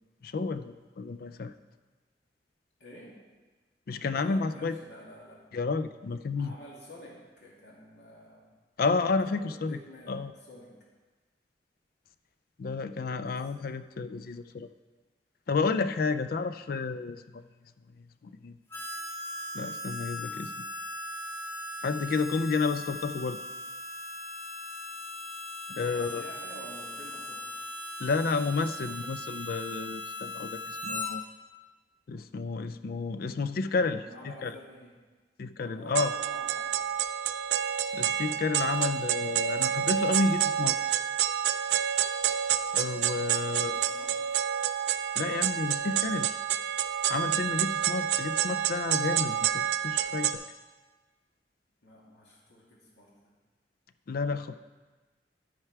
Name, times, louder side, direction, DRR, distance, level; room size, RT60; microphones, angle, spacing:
voice 1, 0.2-1.5 3.9-4.8 5.5-6.5 8.8-9.8 10.1-10.3 12.6-14.7 15.5-17.4 18.2-18.6 19.5-20.6 21.8-23.4 25.7-26.2 28.0-31.2 32.1-34.5 35.4-36.1 37.9-40.8 42.7-43.7 45.2-46.4 47.1-50.3 54.1-54.6, left 4 dB, 55° left, 12 dB, 0.4 m, -31 dB
voice 2, 2.8-3.2 4.1-5.4 6.4-8.4 9.2-10.7 13.1-13.4 25.7-27.5 33.8-34.9 35.5-36.9 43.2-44.5 51.8-53.1, equal, 80° left, -4 dB, 2.2 m, -49 dB
Harmonica, 18.7-31.1, left 1 dB, 15° left, 1.1 m, -39 dB
sound 1, 35.9-50.3, right 9 dB, 70° right, 0.4 m, -28 dB
13.0 x 4.7 x 4.6 m, 1.3 s
head